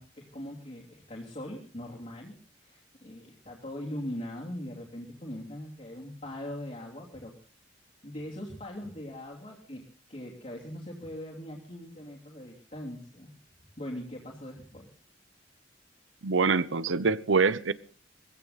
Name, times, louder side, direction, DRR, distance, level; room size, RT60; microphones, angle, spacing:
voice 1, 0.0-7.3 8.0-9.8 10.1-13.3 13.8-14.9, left 1 dB, 35° left, 3.1 m, -41 dB
voice 2, 16.2-17.7, right 4 dB, 90° right, 0.8 m, -25 dB
21.0 x 15.5 x 4.1 m
head